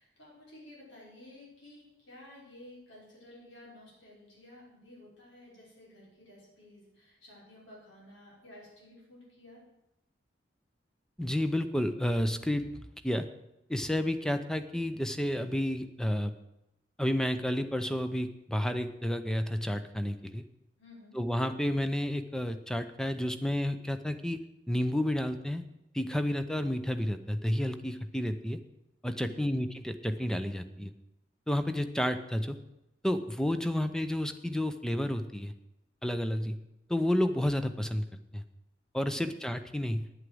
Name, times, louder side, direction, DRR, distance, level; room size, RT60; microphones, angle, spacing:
voice 1, 0.0-9.6 20.8-21.2 29.2-29.5 39.1-39.4, left 1 dB, 85° left, -5 dB, 5.9 m, -53 dB
voice 2, 11.2-12.7 13.0-13.3 13.7-16.3 17.0-20.4 21.1-25.6 25.9-28.6 29.0-30.9 31.5-32.6 33.0-35.5 36.0-36.6 36.9-38.0 38.3-38.4 38.9-40.1, left 1 dB, 5° left, 9 dB, 0.7 m, -31 dB
9.8 x 8.3 x 7.8 m, 0.90 s
head